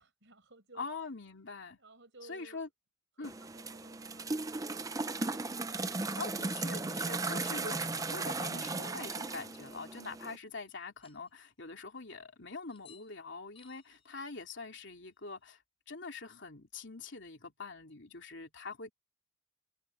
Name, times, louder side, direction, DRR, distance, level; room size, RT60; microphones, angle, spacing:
voice 1, 0.0-0.8 1.8-2.6 3.2-4.4 4.7-5.6, right 2 dB, 60° right, 7.1 m, -57 dB
voice 2, 0.7-1.8 2.2-2.7 3.2-3.3 6.2-15.6 15.9-18.9, left 4 dB, 60° left, 3.2 m, -44 dB
sound 1, 3.2-10.4, right 3 dB, 15° right, 0.6 m, -36 dB
sound 2, 10.6-10.7 11.0-11.6 12.7-13.2 13.5-15.5, left 8 dB, 30° left, 6.9 m, -65 dB
head